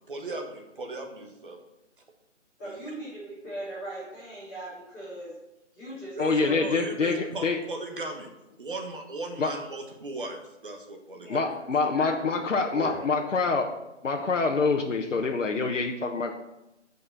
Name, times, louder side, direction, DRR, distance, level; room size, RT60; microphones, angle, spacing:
voice 1, 0.1-1.6 2.6-2.7 6.2-8.3 8.6-11.4, right 2 dB, 45° right, 3 dB, 1.3 m, -37 dB
voice 2, 2.6-5.4 5.7-6.6 11.1-11.6 11.9-13.2, right 1 dB, 15° left, -14 dB, 2.9 m, -39 dB
voice 3, 6.2-7.6 9.4-9.5 11.3-13.7 14.0-16.3, left 4 dB, 85° left, 2 dB, 1.1 m, -26 dB
8.8 x 5.4 x 6.0 m, 0.93 s
hypercardioid pair, 175°, 37 cm